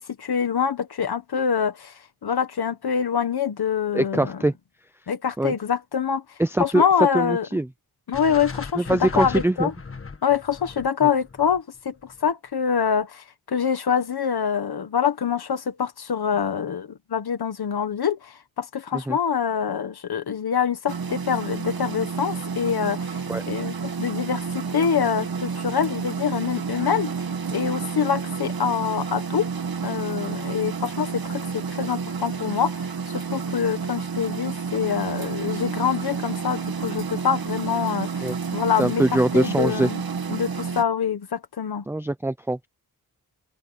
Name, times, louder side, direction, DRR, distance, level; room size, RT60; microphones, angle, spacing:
voice 1, 0.0-4.4 5.1-6.2 6.6-7.5 8.1-9.7 10.2-27.2 27.5-29.5 29.8-40.0 40.3-41.8, left 7 dB, 80° left, 1.5 m, -25 dB
voice 2, 3.9-4.5 5.4-5.5 6.4-6.8 7.1-7.7 8.8-9.7 18.9-19.2 23.3-23.4 38.2-38.4 38.8-39.9 41.9-42.7, right 1 dB, 5° right, 0.5 m, -23 dB
sound 1, 8.1-12.3, left 4 dB, 35° left, 1.6 m, -37 dB
sound 2, 20.9-40.8, right 5 dB, 70° right, 2.2 m, -30 dB
wide cardioid pair, 140°, 38 cm